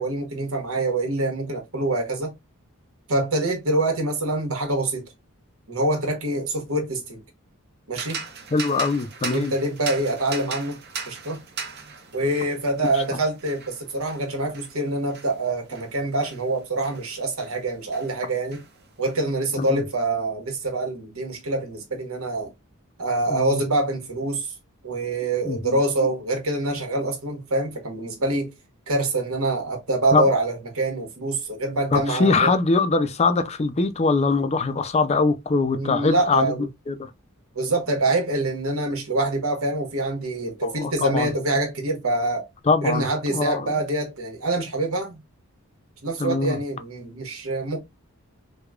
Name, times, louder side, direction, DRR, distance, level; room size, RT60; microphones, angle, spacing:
voice 1, 0.0-2.3 3.1-5.0 5.7-7.2 7.9-8.2 9.3-10.8 11.1-11.4 12.1-18.6 19.0-22.5 23.0-24.5 24.8-28.5 28.9-32.5 35.7-36.7 37.5-42.5 42.8-45.2 46.0-47.8, right 2 dB, 80° right, 1.3 m, -25 dB
sound 1, 7.9-17.6 17.9-19.2, right 5 dB, 50° right, 0.8 m, -38 dB
voice 2, 8.5-9.5 12.9-13.0 19.6-19.8 23.3-23.6 25.4-25.8 30.1-30.3 31.9-36.5 36.9-37.1 40.6-41.3 42.7-43.7 46.2-46.6, left 4 dB, 30° left, 0.4 m, -22 dB
4.7 x 2.3 x 2.3 m
head